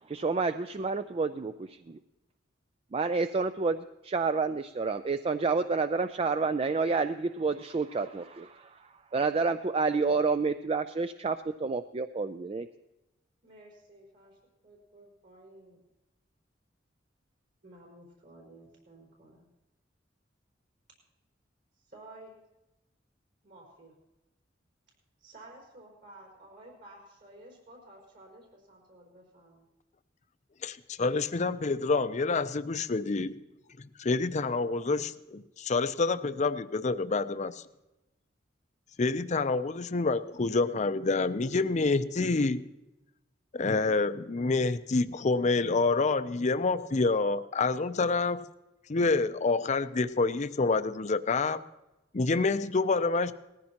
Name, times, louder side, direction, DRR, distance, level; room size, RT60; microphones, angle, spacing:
voice 1, 0.0-2.0 2.9-12.7, right 4 dB, 30° right, 10 dB, 0.4 m, -29 dB
voice 2, 13.4-14.4 14.6-15.8 17.6-19.5 21.9-22.3 23.4-23.9 25.2-29.6, right 1 dB, 60° right, -3 dB, 4.4 m, -53 dB
voice 3, 30.6-33.3 33.8-37.6 39.0-42.6 43.5-48.4 48.9-51.6 52.1-53.3, left 3 dB, 40° left, 12 dB, 0.5 m, -27 dB
19.0 x 14.5 x 2.9 m, 0.99 s
head